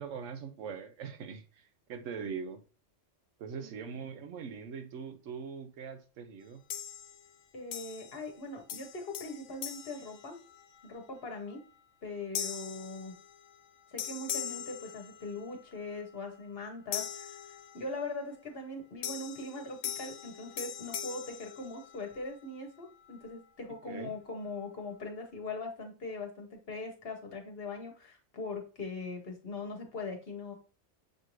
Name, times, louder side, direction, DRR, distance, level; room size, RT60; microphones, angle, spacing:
voice 1, 0.0-2.6 3.4-6.6 23.9-24.2, right 6 dB, 80° right, 1.0 m, -42 dB
voice 2, 3.6-4.0 7.5-10.4 10.8-11.6 12.0-13.1 13.9-17.3 17.7-30.5, left 3 dB, 55° left, 1.2 m, -41 dB
sound 1, 6.7-7.4 7.7-8.4 8.7-10.9 11.4-11.6 12.3-13.7 14.0-15.6 16.9-18.1 19.0-22.3, left 9 dB, 85° left, 1.0 m, -41 dB
6.5 x 2.6 x 3.0 m
omnidirectional pair, 1.3 m